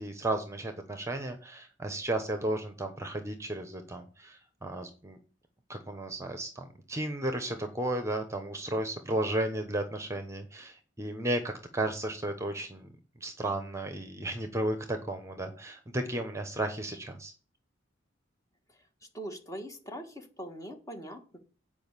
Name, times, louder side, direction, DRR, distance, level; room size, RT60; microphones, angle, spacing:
voice 1, 0.0-5.2 5.7-12.9 13.2-17.3, right 1 dB, 15° right, 7 dB, 1.1 m, -34 dB
voice 2, 19.1-21.4, right 1 dB, 20° left, 4 dB, 1.7 m, -42 dB
8.9 x 5.3 x 7.3 m, 0.36 s
head